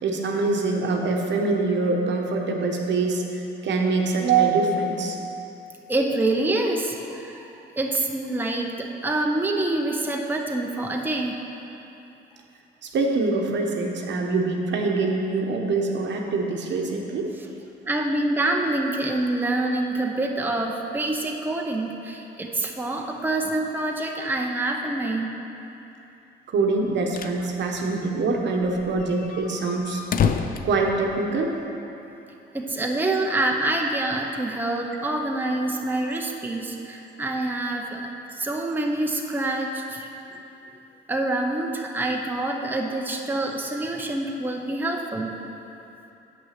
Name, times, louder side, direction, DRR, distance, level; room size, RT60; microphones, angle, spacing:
voice 1, 0.0-5.2 12.8-17.3 26.5-30.0 30.6-31.5, right 3 dB, 65° right, 1 dB, 1.0 m, -24 dB
voice 2, 5.9-7.5 7.8-11.4 17.9-25.3 32.5-40.1 41.1-45.4, right 2 dB, 10° right, 1 dB, 0.7 m, -26 dB
sound 1, 26.8-27.4 27.7-27.8 28.1-28.2 28.6-31.6, left 7 dB, 45° left, 0.5 m, -28 dB
7.8 x 5.9 x 5.8 m, 2.9 s
cardioid pair, 90°, 20 cm